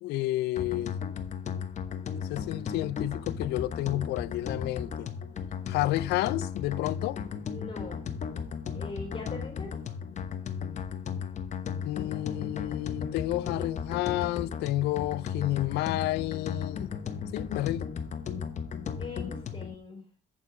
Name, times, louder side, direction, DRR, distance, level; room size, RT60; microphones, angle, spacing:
voice 1, 0.0-1.0 2.3-5.1 5.7-7.2 11.8-16.9 17.3-17.9, left 16 dB, 80° left, 0.4 m, -30 dB
sound 1, 0.6-19.7, left 7 dB, 45° left, 1.1 m, -35 dB
voice 2, 7.5-8.0 8.6-9.7 19.0-20.0, left 3 dB, 30° left, 4.9 m, -41 dB
8.3 x 7.3 x 4.9 m
cardioid pair, 110°, 17 cm